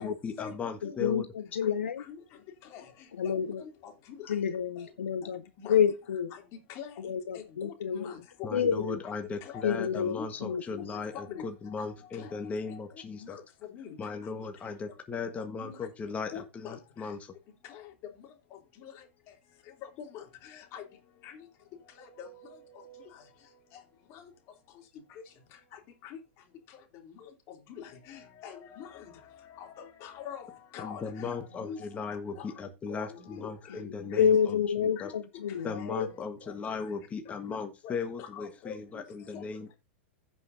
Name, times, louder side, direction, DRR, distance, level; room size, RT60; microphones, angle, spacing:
voice 1, 0.0-1.2 8.4-13.4 14.0-17.3 30.8-35.1 35.6-39.8, left 4 dB, 20° left, 1.4 m, -37 dB
voice 2, 0.8-2.0 3.2-3.6 4.3-5.4 5.7-6.3 7.0-8.1 8.5-9.0 9.6-11.0 33.8-36.1, left 7 dB, 80° left, 0.7 m, -29 dB
voice 3, 3.2-4.2 5.6-5.8 6.3-6.4 6.7-6.9 7.3-8.2 8.5-8.7 9.4-9.6 10.2-10.5 10.9-11.4 11.8-11.9 12.2-12.3 13.2-13.4 13.7-13.9 15.6-15.8 16.3-16.8 17.7-17.8 18.8-18.9 20.0-20.8 21.2-21.4 22.2-22.5 22.7-23.0 24.1-24.2 26.0-26.2 27.7-29.0 29.6-30.5 30.7-31.4 31.7-31.8 32.4-32.5 32.9-33.5 34.1-34.3 35.0-35.1 37.5-37.6 37.8-39.0 39.3-39.4, left 8 dB, 45° left, 3.0 m, -44 dB
16.0 x 5.6 x 2.7 m
hypercardioid pair, 110°, 7 cm